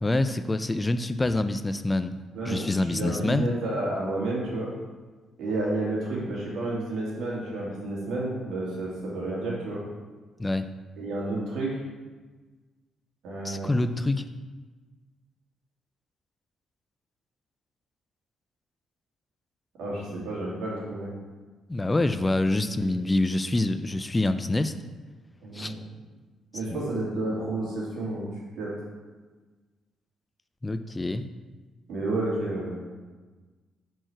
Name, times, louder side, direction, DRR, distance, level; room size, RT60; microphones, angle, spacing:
voice 1, 0.0-2.1 2.5-3.5 10.4-10.7 13.4-14.3 21.7-24.7 25.5-25.7 26.7-26.8 30.6-31.3, left 2 dB, 20° left, 10 dB, 0.3 m, -26 dB
voice 2, 2.3-4.7 5.4-9.8 11.0-11.8 13.2-13.7 19.8-21.1 22.6-22.9 25.4-25.8 26.5-28.3 28.6-28.7 31.9-32.8, right 2 dB, 75° right, -5 dB, 2.2 m, -31 dB
6.1 x 4.6 x 4.5 m, 1.3 s
cardioid pair, 90°, 0 cm